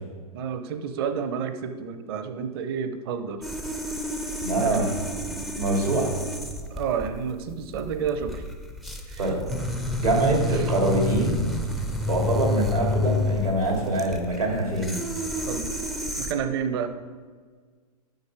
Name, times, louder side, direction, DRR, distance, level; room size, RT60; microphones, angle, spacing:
voice 1, 0.3-3.4 4.6-4.9 6.7-8.4 9.1-9.2 10.5-10.7 15.5-15.7 16.2-16.9, right 7 dB, 40° right, 9 dB, 0.7 m, -30 dB
sound 1, 3.4-16.3, left 2 dB, ahead, 0.4 m, -30 dB
voice 2, 4.4-5.0 5.3-6.2 9.2-9.4 10.0-11.4 12.1-15.0, right 2 dB, 85° right, -1 dB, 2.4 m, -24 dB
10.0 x 6.3 x 3.4 m, 1.5 s
figure-of-eight pair, 110°, 19 cm